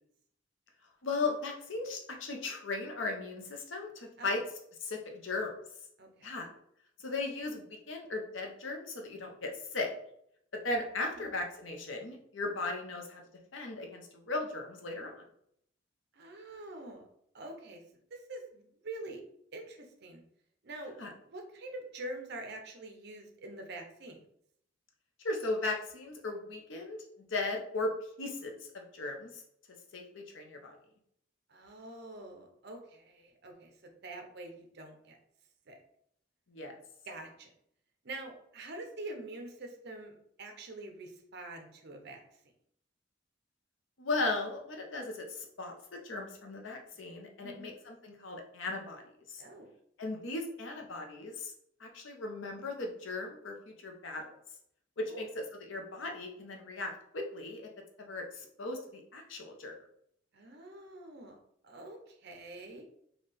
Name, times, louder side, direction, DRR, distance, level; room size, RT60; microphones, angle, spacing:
voice 1, 1.0-4.4 4.8-5.5 6.2-6.5 7.0-9.9 10.6-13.2 13.5-15.2 21.0-21.1 25.2-27.0 27.3-27.9 28.2-29.4 29.9-30.8 36.5-36.8 44.0-49.0 49.3-49.4 50.0-51.5 51.8-54.3 55.0-57.7 58.0-59.7, left 2 dB, 85° left, 2 dB, 0.8 m, -37 dB
voice 2, 6.0-6.4 16.1-17.1 17.3-17.8 18.1-19.2 19.5-20.2 20.6-24.2 31.5-35.2 35.7-35.8 37.1-37.5 38.0-42.2 47.4-47.7 49.4-49.7 55.1-55.3 60.3-61.4 61.6-62.9, right 2 dB, 60° right, 4 dB, 0.7 m, -45 dB
4.0 x 2.4 x 3.4 m, 0.71 s
head